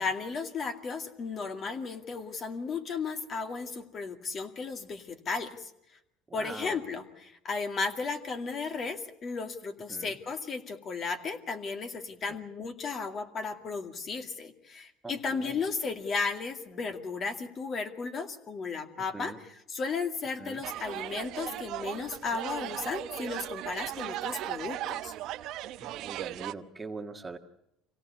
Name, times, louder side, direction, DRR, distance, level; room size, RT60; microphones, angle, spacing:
voice 1, 0.0-5.7 6.3-25.1, left 4 dB, 40° left, 6 dB, 2.4 m, -35 dB
voice 2, 6.3-6.8 9.9-10.1 12.2-12.3 15.0-15.6 19.1-19.4 20.4-20.6 25.9-27.4, right 3 dB, 15° right, 5 dB, 1.6 m, -42 dB
sound 1, 20.6-26.5, right 14 dB, 60° right, 0.8 m, -37 dB
25.0 x 17.5 x 8.3 m, 0.82 s
supercardioid pair, 105°, 0 cm